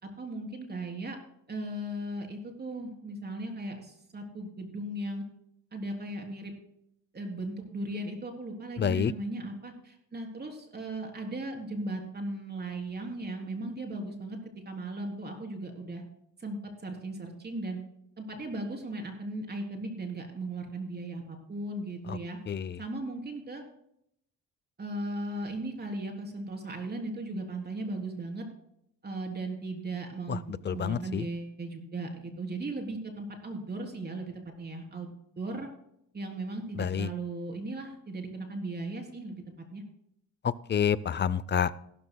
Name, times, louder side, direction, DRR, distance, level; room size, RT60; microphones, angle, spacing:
voice 1, 0.0-1.2 1.5-5.2 5.7-6.5 7.1-14.4 14.7-16.0 16.4-17.8 18.2-22.4 22.8-23.6 24.8-28.4 29.0-35.7 36.1-39.4 39.7-39.8, right 2 dB, 35° right, 2 dB, 3.6 m, -37 dB
voice 2, 8.8-9.1 22.1-22.2 22.5-22.7 30.3-30.4 30.7-31.2 36.8-37.1 40.7-41.7, left 8 dB, 35° left, 18 dB, 0.6 m, -28 dB
16.5 x 13.0 x 2.3 m, 0.74 s
cardioid pair, 90°, 30 cm